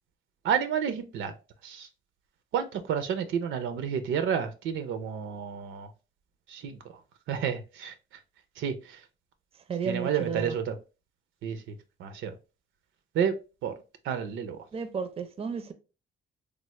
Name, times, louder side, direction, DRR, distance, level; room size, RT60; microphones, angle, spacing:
voice 1, 0.4-1.3 1.6-1.9 2.5-5.9 6.5-6.8 7.3-7.9 8.6-8.7 9.9-10.7 11.4-11.7 12.0-12.3 13.1-13.3 13.6-13.7 14.0-14.6, right 8 dB, 75° right, 0.5 m, -30 dB
voice 2, 9.7-10.6 14.7-15.7, right 6 dB, 30° right, 0.5 m, -33 dB
3.2 x 2.0 x 3.0 m
cardioid pair, 90°, 20 cm